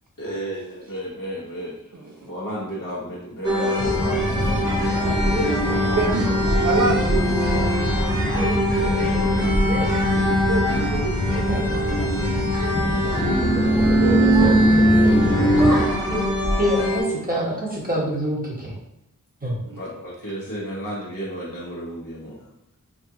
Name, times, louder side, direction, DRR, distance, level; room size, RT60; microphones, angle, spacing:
voice 1, 0.2-1.8 2.2-5.3 8.8-9.5 14.0-15.7 19.8-22.5, right 1 dB, 85° left, -6 dB, 1.2 m, -33 dB
voice 2, 1.9-2.3 5.7-6.3 6.6-7.7 10.5-13.4 15.6-16.1 19.6-19.8, right 3 dB, 70° right, 1 dB, 0.8 m, -29 dB
sound 1, 3.4-17.0, equal, 10° right, 1.3 m, -21 dB
sound 2, 3.8-15.8, left 1 dB, 30° left, 0.7 m, -26 dB
voice 3, 16.5-18.7 19.4-19.5, equal, 25° right, -5 dB, 1.4 m, -25 dB
5.1 x 2.5 x 2.8 m, 0.81 s
wide cardioid pair, 70°, 33 cm